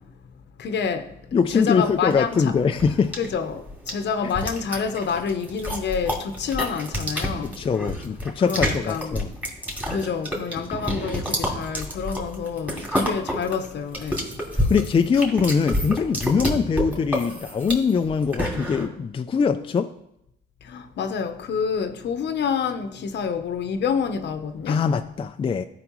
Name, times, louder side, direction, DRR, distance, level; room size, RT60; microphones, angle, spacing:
voice 1, 0.6-1.2 1.5-2.5 3.1-7.6 8.4-9.2 9.9-14.3 20.6-24.8, left 6 dB, 60° left, 0.9 m, -28 dB
voice 2, 1.3-3.1 7.4-9.3 14.6-19.9 24.7-25.7, left 6 dB, 25° left, 0.4 m, -22 dB
sound 1, 1.8-18.9, equal, 5° right, 2.5 m, -29 dB
14.0 x 5.1 x 3.1 m
cardioid pair, 90°, 20 cm